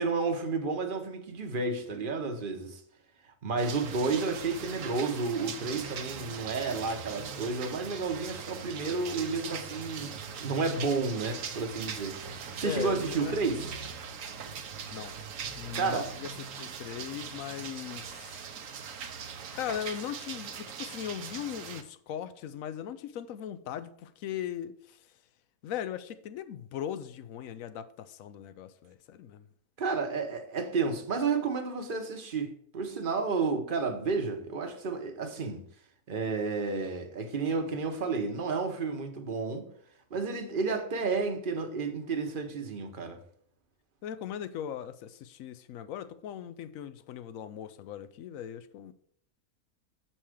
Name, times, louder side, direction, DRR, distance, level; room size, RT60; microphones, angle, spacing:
voice 1, 0.0-2.8 3.4-13.7 15.5-16.1 29.8-35.6 36.1-39.7 40.1-43.2, right 4 dB, 40° right, 1.0 m, -31 dB
sound 1, 3.6-21.8, right 6 dB, 65° right, 1.1 m, -41 dB
voice 2, 12.6-13.7 14.9-15.2 15.6-18.5 19.5-25.0 25.6-29.5 44.0-48.9, left 10 dB, 70° left, 0.9 m, -39 dB
7.0 x 5.6 x 4.9 m
omnidirectional pair, 1.6 m